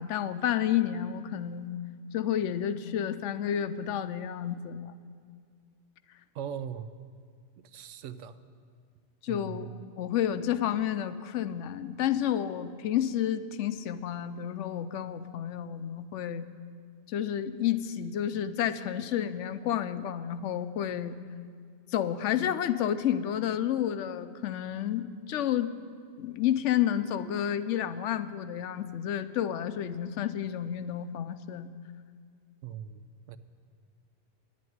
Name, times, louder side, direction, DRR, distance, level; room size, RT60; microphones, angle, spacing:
voice 1, 0.0-1.8 2.1-5.0 9.2-9.7 10.0-16.5 17.1-21.2 21.9-25.7 26.2-31.7, left 10 dB, 85° left, 12 dB, 0.9 m, -30 dB
voice 2, 6.3-6.9 7.6-8.4 9.3-9.8 32.6-33.4, right 8 dB, 85° right, 13 dB, 0.9 m, -40 dB
11.0 x 8.5 x 9.3 m, 2.1 s
omnidirectional pair, 1.2 m